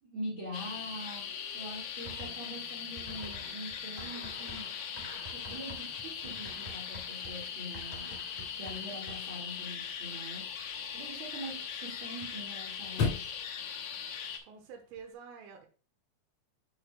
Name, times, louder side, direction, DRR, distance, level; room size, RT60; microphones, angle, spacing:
voice 1, 0.0-4.7 5.2-8.2 8.5-10.5 10.9-13.3, equal, 55° right, 1.3 m, -44 dB
sound 1, 0.5-14.4, left 7 dB, 85° left, 2.0 m, -40 dB
sound 2, 2.0-2.6 3.0-9.4, right 1 dB, 15° right, 1.1 m, -49 dB
Chirp tweet / Car / Slam, 5.1-15.1, left 4 dB, 45° left, 2.2 m, -43 dB
voice 2, 14.4-15.7, right 6 dB, 85° right, 3.7 m, -48 dB
8.5 x 6.6 x 2.3 m
omnidirectional pair, 5.7 m